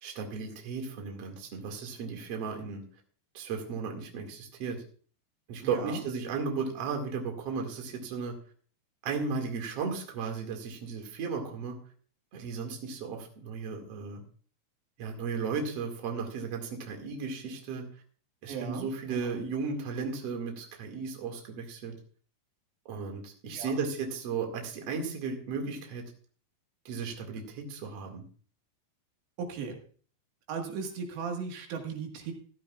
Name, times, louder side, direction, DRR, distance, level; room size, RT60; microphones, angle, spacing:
voice 1, 0.0-2.8 3.3-4.8 5.5-8.3 9.0-11.7 12.3-14.2 15.0-17.8 18.4-21.9 22.9-26.0 26.8-28.2, right 5 dB, 45° right, 2 dB, 2.6 m, -35 dB
voice 2, 5.6-6.0 18.5-19.3 23.5-23.8 29.4-29.8 30.5-32.3, right 5 dB, 85° right, 3 dB, 4.0 m, -37 dB
15.0 x 13.5 x 2.4 m, 0.43 s
omnidirectional pair, 5.0 m